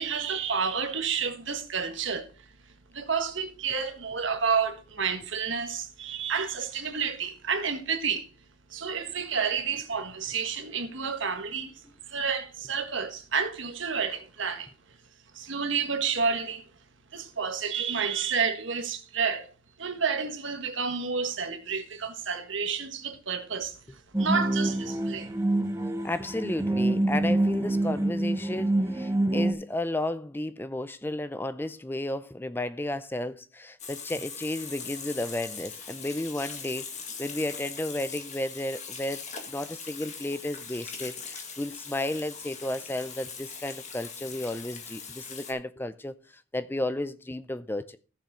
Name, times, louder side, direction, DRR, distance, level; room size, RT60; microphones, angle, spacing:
voice 1, 0.0-2.2 2.9-8.2 8.7-11.7 12.1-14.7 15.3-16.6 17.1-19.5 19.8-23.7 24.2-25.3, right 6 dB, 70° right, 1.5 m, -30 dB
sound 1, 24.1-29.5, right 1 dB, 15° right, 1.0 m, -26 dB
voice 2, 26.0-36.9 37.2-48.0, left 1 dB, 10° left, 0.4 m, -33 dB
Water tap faucet / Sink (filling or washing), 33.8-45.5, left 5 dB, 35° left, 1.8 m, -41 dB
14.5 x 7.2 x 3.7 m
head